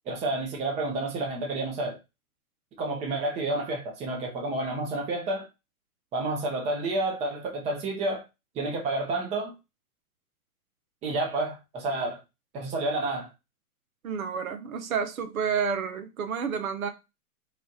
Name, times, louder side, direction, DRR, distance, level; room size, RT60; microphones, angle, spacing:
voice 1, 0.1-2.0 2.8-5.5 6.1-8.2 8.5-9.5 11.0-12.2 12.5-13.3, right 2 dB, 15° right, 0.7 m, -30 dB
voice 2, 14.0-16.9, right 6 dB, 65° right, 0.8 m, -30 dB
3.1 x 2.4 x 4.0 m
hypercardioid pair, 130°, 45 cm